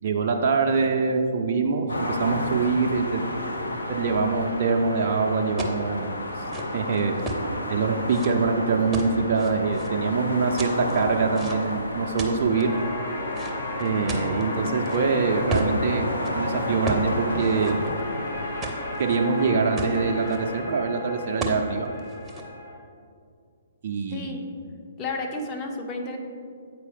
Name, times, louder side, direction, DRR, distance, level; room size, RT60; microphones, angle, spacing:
voice 1, 0.0-3.2 3.9-6.4 6.7-7.1 7.7-12.7 13.8-17.8 19.0-21.9 23.8-24.4, right 4 dB, 50° right, 2 dB, 0.4 m, -24 dB
sound 1, 1.9-20.6, left 1 dB, 85° left, 0.7 m, -32 dB
sound 2, 5.6-5.8 6.3-7.5 8.1-8.3 8.9-9.9 10.6-11.8 12.2-12.6 13.3-15.0 15.5-15.8 16.1-16.3 16.9-17.1 17.4-18.2 18.6-19.2 19.5-19.6 19.8-20.4 21.4-21.6 22.0-22.4, right 2 dB, 15° right, 0.7 m, -32 dB
sound 3, 12.5-22.8, left 2 dB, 60° left, 1.1 m, -35 dB
voice 2, 24.1-24.4 25.0-26.2, left 3 dB, 25° left, 2 dB, 0.8 m, -31 dB
8.2 x 4.5 x 3.4 m, 2.4 s
figure-of-eight pair, 125°, 0 cm